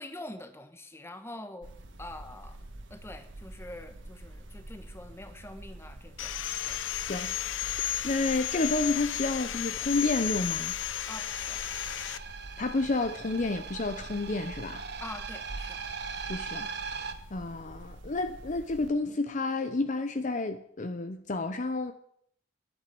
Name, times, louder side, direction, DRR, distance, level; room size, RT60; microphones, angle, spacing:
voice 1, 0.0-1.7 2.0-2.6 2.9-6.3 6.7-6.8 11.1-11.6 15.0-15.8, left 1 dB, 15° left, 8 dB, 1.3 m, -44 dB
sound 1, 1.6-18.9, right 1 dB, 80° right, 1.7 m, -46 dB
Sawing, 6.2-12.2, left 11 dB, 85° left, 0.7 m, -33 dB
voice 2, 8.0-10.8 12.6-14.8 16.3-16.7 17.3-21.9, left 3 dB, 40° left, 9 dB, 0.7 m, -30 dB
sound 2, 11.0-17.1, right 5 dB, 60° right, 1.2 m, -40 dB
11.0 x 9.0 x 8.5 m, 0.65 s
head